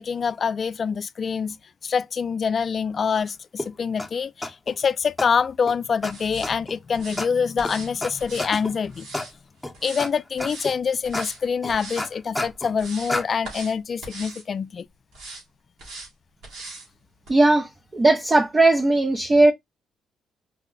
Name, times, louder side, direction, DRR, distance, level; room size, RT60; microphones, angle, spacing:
voice 1, 0.0-1.6 1.8-9.1 9.8-14.9, left 6 dB, 45° left, 0.3 m, -25 dB
sound 1, 3.6-3.7 4.0-4.1 4.4-4.7 5.2-5.3 5.7-5.8 6.0-6.1 6.4-6.8 7.2-7.3 7.6-7.7 8.0-8.1 8.4-8.7 9.1-9.3 9.6-10.1 10.4-10.8 11.1-11.3 11.6-12.7 13.1-13.2, left 2 dB, 5° left, 0.8 m, -29 dB
sound 2, 6.1-6.5 6.9-7.2 7.6-7.9 8.2-9.3 9.7-10.1 10.4-10.7 11.0-11.4 11.7-12.1 12.5-13.2 13.4-13.7 14.0-14.4 15.1-15.4 15.8-16.1 16.4-16.9 17.3-17.4, right 3 dB, 85° right, 2.3 m, -40 dB
voice 2, 17.3-19.5, right 2 dB, 25° right, 0.6 m, -18 dB
4.7 x 2.1 x 3.7 m
cardioid pair, 90°, 0 cm